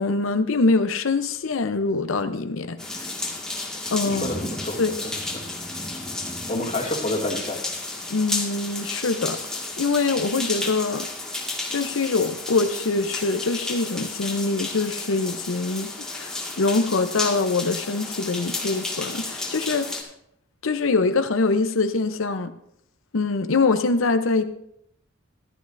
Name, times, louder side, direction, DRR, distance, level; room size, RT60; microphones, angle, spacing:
voice 1, 0.0-2.8 3.9-4.3 4.8-4.9 8.1-9.4 9.8-11.1 11.7-20.0 20.6-22.5 23.1-24.4, left 3 dB, 85° left, 8 dB, 0.7 m, -24 dB
sound 1, 2.8-20.0, left 2 dB, 5° left, 1.8 m, -32 dB
voice 2, 4.0-5.5 6.5-7.6, left 2 dB, 35° left, -2 dB, 2.2 m, -29 dB
14.5 x 12.0 x 2.6 m, 0.77 s
head